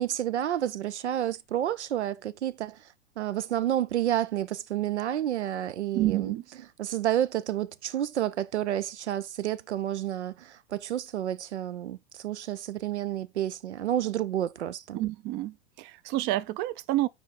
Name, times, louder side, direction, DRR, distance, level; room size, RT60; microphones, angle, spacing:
voice 1, 0.0-2.8 3.2-6.4 6.8-15.0, right 11 dB, 85° right, 0.5 m, -30 dB
voice 2, 5.9-6.4 14.9-17.1, right 16 dB, 35° right, 0.4 m, -29 dB
6.1 x 4.4 x 4.0 m
hypercardioid pair, 100°, 33 cm